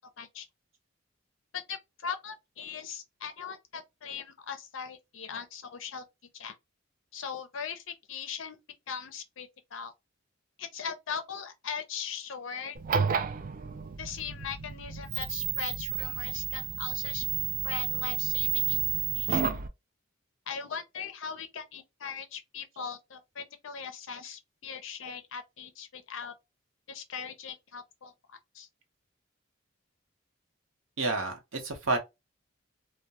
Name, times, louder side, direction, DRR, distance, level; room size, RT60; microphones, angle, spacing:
voice 1, 1.5-6.0 6.3-6.6 7.1-8.6 8.9-9.9 10.6-12.8 14.0-17.2 17.6-18.8 19.1-19.4 20.5-26.3 26.9-28.7, left 6 dB, 70° left, 0.5 m, -40 dB
sound 1, 12.7-19.7, right 8 dB, 45° right, 0.3 m, -31 dB
voice 2, 31.0-32.0, right 3 dB, 75° right, 0.8 m, -29 dB
2.3 x 2.1 x 2.8 m
head